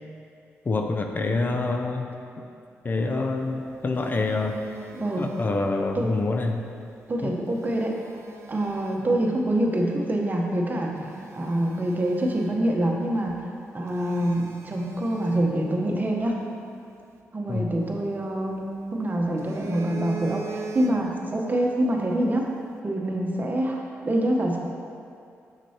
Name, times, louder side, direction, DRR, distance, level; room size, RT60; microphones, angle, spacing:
voice 1, 0.7-2.1 2.8-4.6 5.2-6.7 7.2-7.4 17.5-17.7, left 3 dB, 40° left, 4 dB, 0.5 m, -26 dB
Telephone, 3.5-6.0 7.3-9.2 9.8-10.0 10.5-10.6 11.0-13.0 13.3-13.4 13.9-16.3 17.8-18.8 19.2-21.3 21.6-21.9, right 5 dB, 60° right, 0.5 m, -40 dB
voice 2, 4.9-5.3 5.9-6.1 7.1-7.9 8.5-13.4 13.7-16.4 17.3-22.5 22.8-24.6, right 1 dB, 35° right, 0 dB, 0.9 m, -26 dB
6.7 x 6.1 x 2.9 m, 2.4 s
cardioid pair, 60°, 5 cm